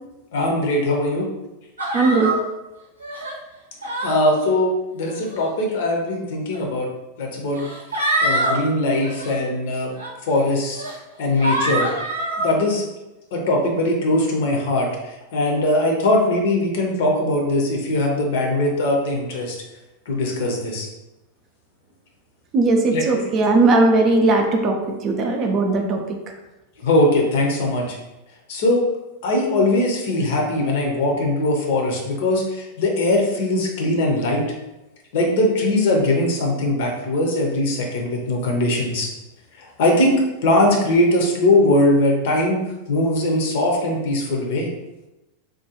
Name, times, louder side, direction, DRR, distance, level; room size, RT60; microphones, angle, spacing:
voice 1, 0.3-1.3 4.0-6.9 7.2-7.7 8.2-9.9 10.3-10.8 11.2-11.9 12.4-12.9 13.3-19.6 20.1-20.9 22.9-23.2 26.8-27.9 28.5-28.8 29.2-34.4 35.1-39.1 39.6-42.6 42.9-44.7, left 1 dB, 55° left, 0 dB, 0.7 m, -20 dB
sound 1, 1.8-2.4 3.0-3.4 3.8-4.2 5.1-5.5 6.5-6.6 7.5-8.6 9.0-9.3 10.0-10.1 10.7-10.9 11.4-12.5, right 1 dB, 75° right, 0.6 m, -24 dB
voice 2, 1.9-2.3 22.5-24.8 25.0-26.0, right 3 dB, 30° right, 3 dB, 0.4 m, -18 dB
3.6 x 2.2 x 2.9 m, 1.0 s
figure-of-eight pair, 90°, 0 cm